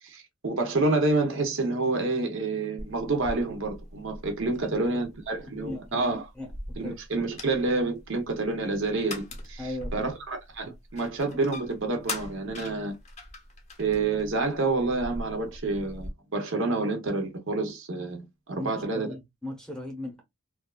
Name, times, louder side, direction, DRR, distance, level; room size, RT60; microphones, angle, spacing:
voice 1, 0.0-6.2 6.8-9.2 9.5-13.0 13.8-19.1, right 3 dB, 55° right, 0.7 m, -28 dB
sound 1, 2.8-16.1, left 1 dB, 30° left, 0.6 m, -42 dB
voice 2, 5.4-6.0 6.4-6.5 6.8-7.0 9.6-10.1 18.5-20.2, left 1 dB, 5° left, 0.9 m, -38 dB
2.6 x 2.3 x 2.2 m
head